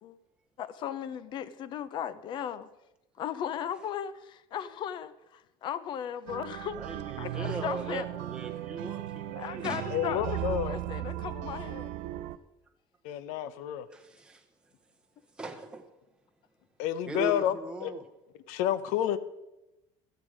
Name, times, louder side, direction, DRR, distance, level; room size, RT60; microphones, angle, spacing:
voice 1, 0.6-2.7 3.2-8.1 9.4-11.9, left 9 dB, 40° left, 0.6 m, -37 dB
sound 1, 6.3-12.4, right 14 dB, 75° right, 0.5 m, -36 dB
voice 2, 6.7-9.8 13.9-14.4 15.4-15.9 17.1-18.0, right 2 dB, 5° right, 0.9 m, -39 dB
voice 3, 9.9-10.7 13.0-13.9 16.8-18.0 18.5-19.2, left 11 dB, 70° left, 0.8 m, -30 dB
13.0 x 9.0 x 5.0 m
cardioid pair, 170°, 13 cm